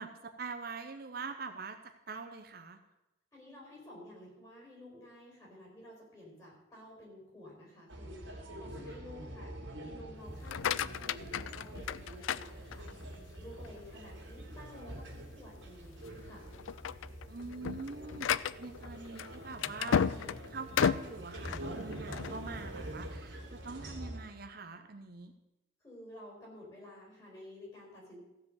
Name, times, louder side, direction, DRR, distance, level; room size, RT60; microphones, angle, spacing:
voice 1, 0.0-1.8 2.1-2.8 17.3-25.3, right 4 dB, 50° right, 6 dB, 0.7 m, -44 dB
voice 2, 3.3-16.5 25.8-28.2, left 1 dB, 15° left, -3 dB, 4.3 m, -52 dB
sound 1, 7.9-24.2, right 1 dB, 70° right, 2.5 m, -46 dB
sound 2, 10.3-13.1 13.6-14.1 14.6-14.7 15.1-15.2 15.9-16.2 16.5-22.4, left 7 dB, 90° left, 0.4 m, -34 dB
15.0 x 5.1 x 7.9 m, 0.97 s
head